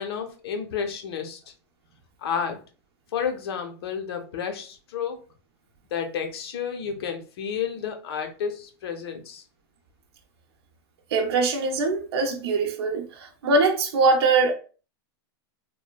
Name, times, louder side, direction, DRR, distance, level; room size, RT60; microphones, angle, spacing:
voice 1, 0.0-1.4 2.2-2.6 3.1-5.2 5.9-9.4, left 7 dB, 75° left, 0.7 m, -31 dB
voice 2, 11.1-14.5, right 3 dB, 85° right, 0.6 m, -22 dB
3.1 x 2.1 x 2.2 m
supercardioid pair, 160°, 13 cm